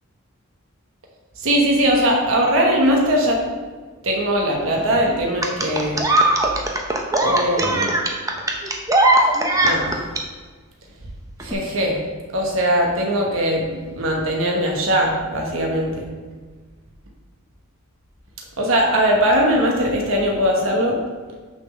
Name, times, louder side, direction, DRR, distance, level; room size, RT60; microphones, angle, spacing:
voice 1, 1.4-3.4 4.0-6.1 7.2-7.9 9.6-10.0 11.4-12.0 12.3-16.1 18.6-21.0, equal, 65° right, -1 dB, 1.2 m, -20 dB
sound 1, 5.4-10.2 11.4-11.5, right 1 dB, 15° right, 0.7 m, -19 dB
6.4 x 4.2 x 6.3 m, 1.4 s
head